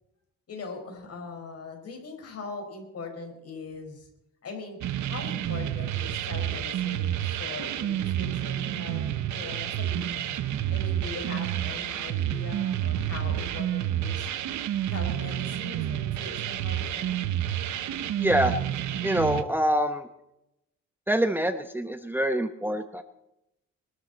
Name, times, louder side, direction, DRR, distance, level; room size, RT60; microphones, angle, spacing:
voice 1, 0.5-4.1 4.4-4.8 5.1-9.1 9.3-10.4 10.7-14.3 14.9-17.2, left 4 dB, 55° left, 3 dB, 5.4 m, -41 dB
sound 1, 4.8-19.4, right 11 dB, 70° right, 1.1 m, -29 dB
voice 2, 18.2-18.5 19.0-20.1 21.1-23.0, right 1 dB, 5° right, 8 dB, 1.0 m, -25 dB
22.5 x 13.0 x 4.3 m, 0.87 s
cardioid pair, 90°, 30 cm